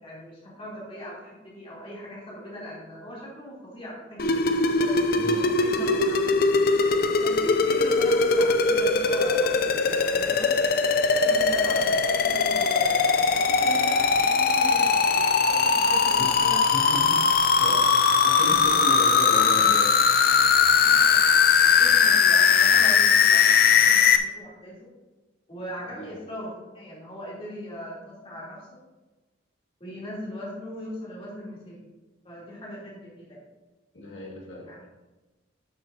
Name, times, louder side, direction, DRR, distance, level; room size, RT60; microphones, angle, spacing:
voice 1, 0.0-5.0 5.6-6.4 7.2-10.5 11.2-16.6 18.4-18.6 20.8-21.2 21.8-23.4 23.7-24.9 25.5-28.8 29.8-31.9 32.2-33.4 34.6-34.8, equal, 30° left, -6 dB, 3.2 m, -39 dB
sound 1, 4.2-24.2, left 5 dB, 50° left, 0.5 m, -20 dB
voice 2, 5.2-5.5 16.2-17.2 17.6-19.9 25.9-26.2 33.9-34.7, left 1 dB, 70° left, -3 dB, 2.0 m, -35 dB
12.0 x 6.9 x 2.8 m, 1.2 s
head